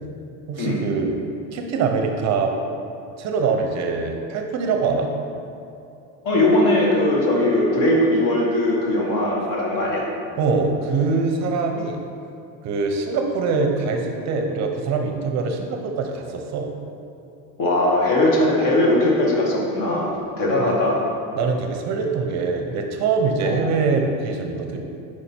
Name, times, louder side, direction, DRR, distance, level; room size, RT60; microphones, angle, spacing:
voice 1, 0.5-1.1 1.5-2.5 3.2-5.1 10.3-12.0 12.6-16.7 20.6-20.8 21.4-24.8, right 4 dB, 40° right, 3 dB, 0.6 m, -23 dB
voice 2, 6.2-10.0 17.6-21.0 23.4-23.6, left 1 dB, 55° left, -2 dB, 1.5 m, -20 dB
5.1 x 4.8 x 4.3 m, 2.6 s
supercardioid pair, 130°, 41 cm